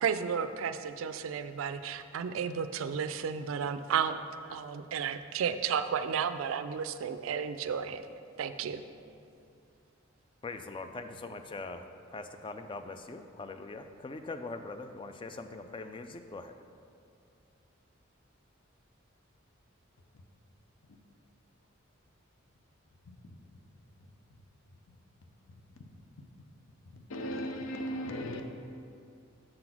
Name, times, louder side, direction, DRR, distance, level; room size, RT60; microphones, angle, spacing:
voice 1, 0.0-4.2 4.5-8.1 8.4-8.8, right 7 dB, 75° right, 0.4 m, -33 dB
voice 2, 10.4-11.8 12.1-16.5, left 3 dB, 25° left, 0.3 m, -42 dB
voice 3, 27.1-28.4, equal, 70° left, 0.6 m, -36 dB
7.6 x 3.9 x 6.0 m
head